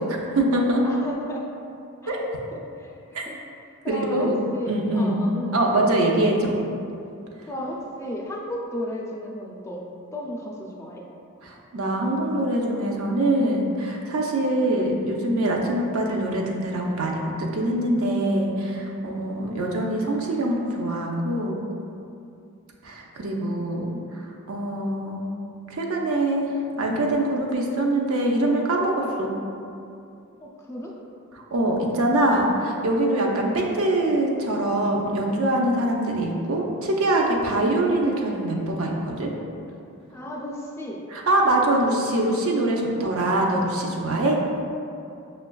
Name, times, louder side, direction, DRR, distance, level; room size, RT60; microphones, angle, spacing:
voice 1, 0.0-0.8 2.1-2.2 3.1-3.2 3.9-5.3 5.5-6.6 11.4-21.7 22.8-23.9 24.5-25.3 25.7-29.3 31.5-39.3 41.1-44.4, right 1 dB, 75° right, -1 dB, 0.5 m, -23 dB
voice 2, 0.8-1.5 2.0-2.2 2.5-3.3 3.8-5.6 7.5-9.8 10.1-11.0 23.9-24.1 30.4-30.9 40.1-41.1, equal, 15° left, -2 dB, 0.3 m, -34 dB
6.1 x 2.3 x 2.2 m, 2.6 s
head